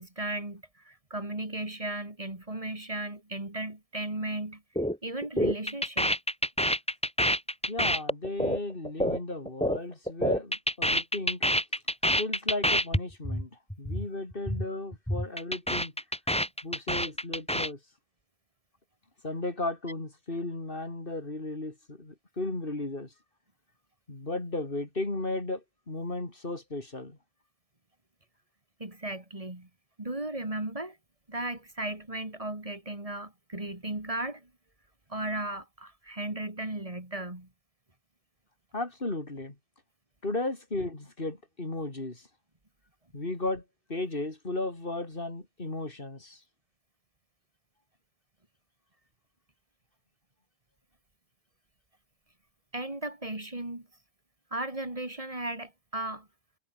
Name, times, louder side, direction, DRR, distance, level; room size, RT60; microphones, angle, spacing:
voice 1, 0.0-4.6 5.0-6.1 28.8-29.7 30.0-31.0 31.3-34.5 35.1-37.5 52.7-53.9 54.5-56.3, right 1 dB, 30° right, 3.1 m, -36 dB
sound 1, 4.8-5.0 5.2-9.8 10.1-13.0 13.2-13.4 13.7-14.1 14.3-14.6 14.9-17.7, equal, 5° left, 5.1 m, -27 dB
voice 2, 7.7-11.4 12.2-13.5 13.8-15.9 16.6-17.8 19.2-23.1 24.1-27.2 38.7-39.5 40.2-42.2 43.1-43.6 43.9-46.4, left 2 dB, 50° left, 4.2 m, -35 dB
omnidirectional pair, 1.2 m